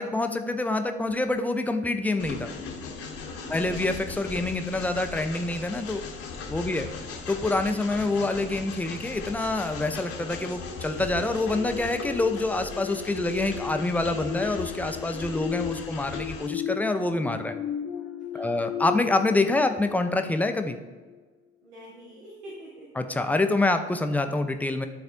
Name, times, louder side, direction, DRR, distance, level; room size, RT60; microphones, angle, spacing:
voice 1, 0.0-2.5 3.5-6.0 6.5-6.9 7.3-17.5 18.3-20.8 23.0-24.9, left 2 dB, 5° left, 7 dB, 0.5 m, -26 dB
Train, 2.2-16.5, left 5 dB, 40° left, 1.0 m, -38 dB
voice 2, 3.2-3.6 6.5-7.2 18.3-18.7 21.6-23.0, right 1 dB, 75° right, -6 dB, 1.2 m, -46 dB
sound 1, 10.7-20.5 21.0-21.2, left 8 dB, 80° left, 0.5 m, -36 dB
10.5 x 4.2 x 2.5 m, 1.4 s
figure-of-eight pair, 50°, 35 cm